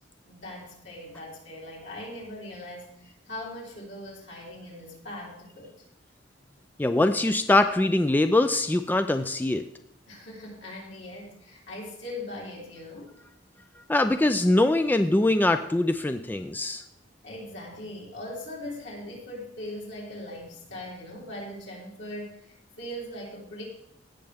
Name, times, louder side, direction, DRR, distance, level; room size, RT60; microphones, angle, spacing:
voice 1, 0.3-5.9 10.1-13.2 17.2-23.6, left 1 dB, 70° left, -4 dB, 3.6 m, -40 dB
voice 2, 6.8-9.6 13.9-16.8, left 2 dB, 10° left, 9 dB, 0.3 m, -23 dB
16.5 x 6.6 x 3.5 m, 0.78 s
head